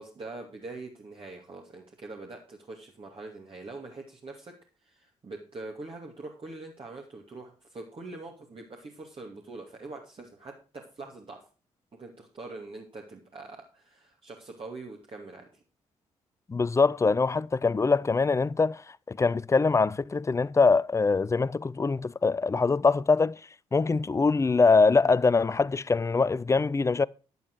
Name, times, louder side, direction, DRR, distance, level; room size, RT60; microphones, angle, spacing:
voice 1, 0.0-4.5 4.8-11.4 12.0-15.6, right 3 dB, 35° right, 2.4 m, -43 dB
voice 2, 16.5-18.8 19.1-23.4 23.7-27.1, left 4 dB, 20° left, 0.5 m, -23 dB
11.0 x 9.3 x 4.7 m
figure-of-eight pair, 40°, 16 cm